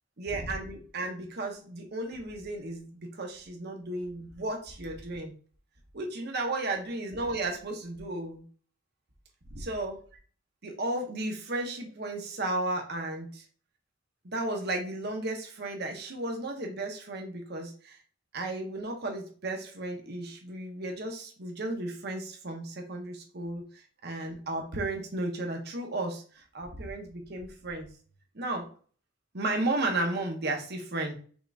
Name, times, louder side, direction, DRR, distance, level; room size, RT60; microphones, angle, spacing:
voice 1, 0.2-5.3 5.9-8.4 9.7-10.0 10.6-13.4 14.2-18.0 18.3-27.9 28.3-28.7 29.3-31.1, right 2 dB, 60° right, 2 dB, 1.1 m, -34 dB
5.8 x 3.5 x 2.6 m, 0.41 s
head